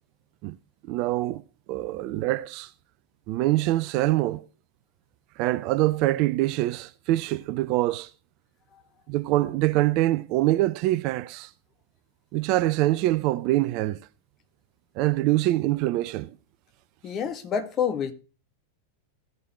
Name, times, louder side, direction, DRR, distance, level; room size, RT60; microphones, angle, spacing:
voice 1, 0.9-1.4 1.7-2.7 3.3-4.5 5.4-8.1 9.1-11.5 12.3-14.0 15.0-16.3, right 16 dB, 40° right, 0.5 m, -24 dB
voice 2, 17.0-18.1, left 7 dB, 30° left, 1.7 m, -27 dB
16.5 x 6.8 x 3.1 m
figure-of-eight pair, 90°, 0 cm